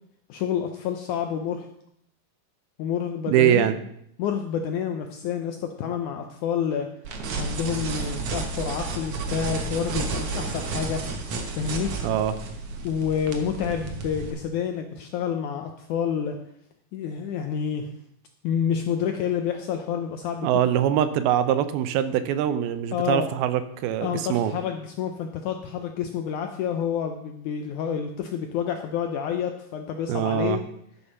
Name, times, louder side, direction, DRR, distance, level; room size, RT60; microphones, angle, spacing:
voice 1, 0.3-1.7 2.8-3.6 4.2-6.9 7.4-11.0 11.5-11.9 12.8-16.4 16.9-17.9 18.4-20.6 22.9-23.3 24.0-30.6, left 8 dB, 80° left, 5 dB, 1.8 m, -28 dB
voice 2, 3.3-3.8 12.0-12.4 20.4-24.5 30.1-30.6, right 10 dB, 90° right, 11 dB, 2.6 m, -23 dB
sound 1, 7.0-14.3, right 3 dB, 60° right, 1.8 m, -32 dB
12.5 x 6.5 x 5.5 m, 0.74 s
omnidirectional pair, 4.3 m